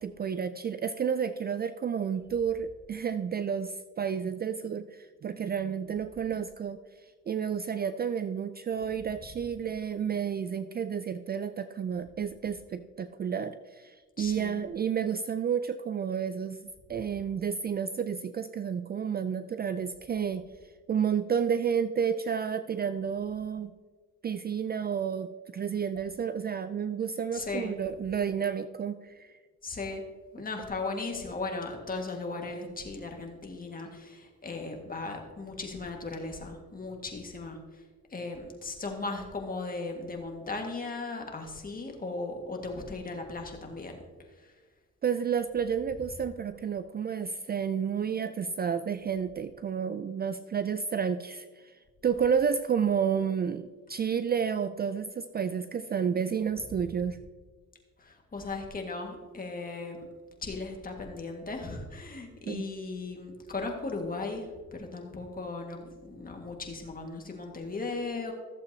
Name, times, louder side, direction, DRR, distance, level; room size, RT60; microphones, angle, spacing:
voice 1, 0.0-20.4 20.9-23.7 24.2-29.3 45.0-51.8 52.0-57.2 62.5-62.6, right 7 dB, 35° right, 12 dB, 0.4 m, -31 dB
voice 2, 14.2-14.6 27.3-27.8 29.6-30.0 30.3-37.8 38.1-44.0 44.3-44.6 56.9-57.1 58.0-60.1 60.4-68.3, left 3 dB, 30° left, 2 dB, 1.8 m, -37 dB
14.5 x 7.5 x 2.8 m, 1.4 s
cardioid pair, 90°, 30 cm